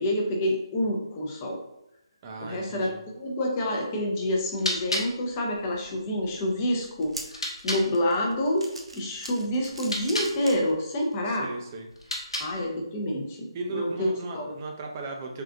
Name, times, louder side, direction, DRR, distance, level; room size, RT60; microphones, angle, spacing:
voice 1, 0.0-1.6 2.4-2.9 3.2-7.4 7.6-8.7 8.9-11.5 12.4-14.5, left 1 dB, 25° left, 0 dB, 0.5 m, -28 dB
voice 2, 2.2-3.0 11.3-11.9 13.5-15.4, right 3 dB, 30° right, 2 dB, 0.5 m, -36 dB
sound 1, 4.3-7.9 9.7-10.4 11.9-12.7, left 1 dB, 80° left, 0.9 m, -34 dB
sound 2, 6.8-11.1 11.6-11.7 12.7-12.8, right 1 dB, 75° right, 0.6 m, -43 dB
3.6 x 2.4 x 2.4 m, 0.86 s
figure-of-eight pair, 150°, 3 cm